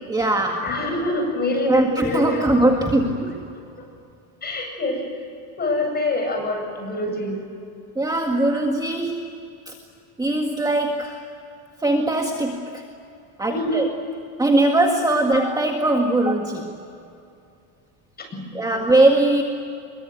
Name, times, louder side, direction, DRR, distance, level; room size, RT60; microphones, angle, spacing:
voice 1, 0.1-0.8 1.7-3.3 8.0-9.8 10.2-11.2 11.8-12.8 13.4-13.9 14.4-16.7 18.5-19.4, right 2 dB, 10° right, 2 dB, 1.8 m, -20 dB
voice 2, 0.6-2.7 4.4-5.0 5.6-7.4 13.5-13.8 18.2-18.5, left 2 dB, 25° left, 2 dB, 8.0 m, -25 dB
26.0 x 23.0 x 9.4 m, 2.6 s
cardioid pair, 135°, 40 cm